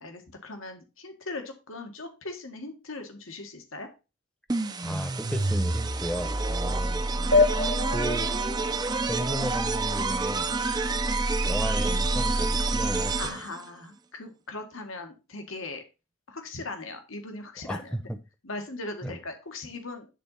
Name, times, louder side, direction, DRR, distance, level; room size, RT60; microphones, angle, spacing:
voice 1, 0.0-3.9 6.6-6.7 13.2-15.8 16.3-18.0 18.4-20.1, left 2 dB, 85° left, 1.7 m, -39 dB
sound 1, 4.5-13.6, right 3 dB, 20° right, 0.5 m, -27 dB
voice 2, 4.8-7.0 7.9-8.3 9.1-10.5 11.5-13.4 17.6-18.2 19.0-19.2, equal, 5° left, 0.9 m, -34 dB
sound 2, 7.3-10.3, left 3 dB, 55° left, 1.2 m, -27 dB
10.0 x 4.0 x 5.6 m
head